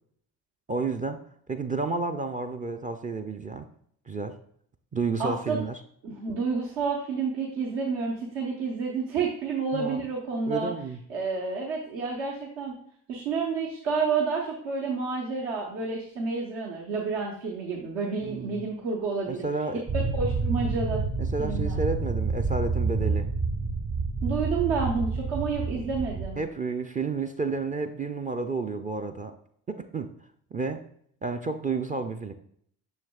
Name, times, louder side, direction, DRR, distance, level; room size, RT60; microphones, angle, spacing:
voice 1, 0.7-1.2 1.5-3.7 4.1-4.4 4.9-5.8 9.7-10.1 10.5-11.0 18.2-18.6 19.3-19.8 21.2-23.3 26.4-29.3 29.7-30.1 30.5-30.8 31.2-32.3, right 4 dB, 20° right, 5 dB, 0.4 m, -31 dB
voice 2, 5.2-5.6 6.0-10.7 11.1-12.7 13.1-19.4 19.9-21.0 21.4-21.8 24.2-26.4, right 4 dB, 70° right, -2 dB, 1.1 m, -29 dB
sound 1, 19.9-26.3, right 4 dB, 45° right, 1.2 m, -28 dB
6.4 x 6.3 x 2.3 m, 0.64 s
hypercardioid pair, 50°, 47 cm